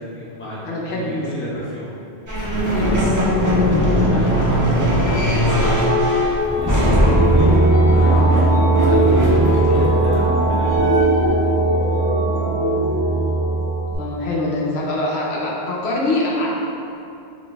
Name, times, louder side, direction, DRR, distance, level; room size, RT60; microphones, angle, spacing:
voice 1, 0.0-1.9 2.7-3.2 4.1-4.5 5.4-6.0 6.4-6.8 7.2-8.5 8.9-10.8, equal, 15° left, -8 dB, 0.6 m, -32 dB
voice 2, 0.6-1.3 2.7-3.0 4.1-4.3 6.9-7.1 14.0-16.5, left 2 dB, 75° left, -4 dB, 0.9 m, -24 dB
sound 1, 2.3-11.4, equal, 25° right, 0.4 m, -20 dB
sound 2, 6.4-13.9, right 2 dB, 10° right, 1.3 m, -17 dB
4.3 x 2.6 x 3.3 m, 2.6 s
omnidirectional pair, 1.1 m